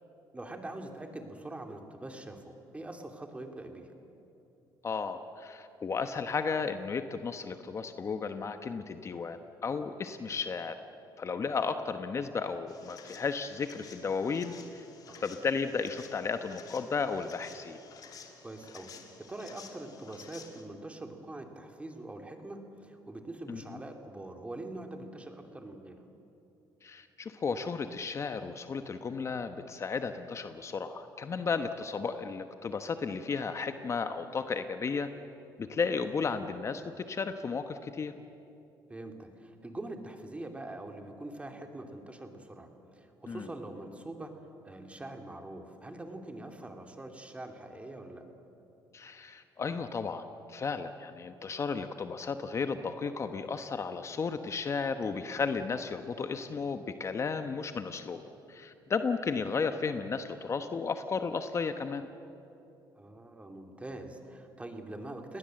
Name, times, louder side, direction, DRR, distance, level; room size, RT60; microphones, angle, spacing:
voice 1, 0.3-3.9 15.0-15.2 18.4-18.9 19.3-26.0 38.9-44.4 44.6-48.3 63.0-65.4, right 2 dB, 15° right, 4 dB, 2.8 m, -43 dB
voice 2, 4.8-10.8 11.2-14.8 15.2-17.8 23.5-23.6 26.8-35.1 35.6-38.1 43.3-43.4 48.9-58.2 58.5-62.1, left 5 dB, 35° left, 8 dB, 1.1 m, -34 dB
sound 1, 12.7-20.6, left 6 dB, 55° left, 2.8 m, -52 dB
29.5 x 19.0 x 7.8 m, 2.8 s
cardioid pair, 95°, 8 cm